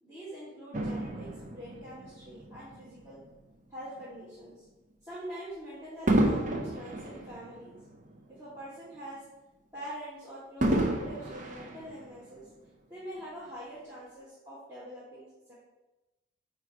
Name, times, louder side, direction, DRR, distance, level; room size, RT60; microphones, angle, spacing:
voice 1, 0.0-3.2 3.7-4.7 5.0-7.8 8.3-9.2 9.7-12.5 12.9-15.5, equal, 15° right, -12 dB, 1.9 m, -44 dB
Fireworks, 0.7-3.3 4.0-4.2 6.1-8.6 8.9-9.0 10.6-12.5 13.2-13.3, right 1 dB, 40° right, 0.7 m, -31 dB
8.7 x 2.9 x 4.7 m, 1.1 s
head